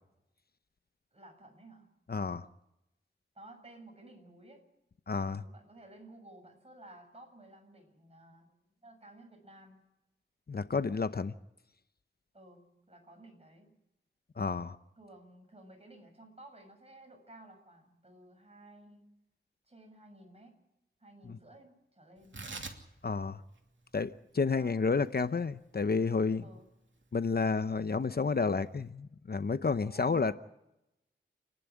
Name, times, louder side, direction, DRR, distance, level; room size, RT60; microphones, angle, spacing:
voice 1, 1.1-1.9 3.3-4.7 5.1-8.5 8.8-9.8 12.3-13.7 15.0-19.1 19.7-20.6 21.0-22.4 24.6-25.0 26.4-26.7 29.8-30.3, right 1 dB, 30° right, 7.4 m, -55 dB
voice 2, 2.1-2.5 5.1-5.4 10.5-11.3 14.4-14.8 21.3-21.4 23.0-23.4 23.9-26.4 27.1-30.3, left 4 dB, 55° left, 0.8 m, -30 dB
Tearing, 22.2-28.9, right 3 dB, 70° right, 2.8 m, -50 dB
29.0 x 11.0 x 9.9 m
wide cardioid pair, 60°, 20 cm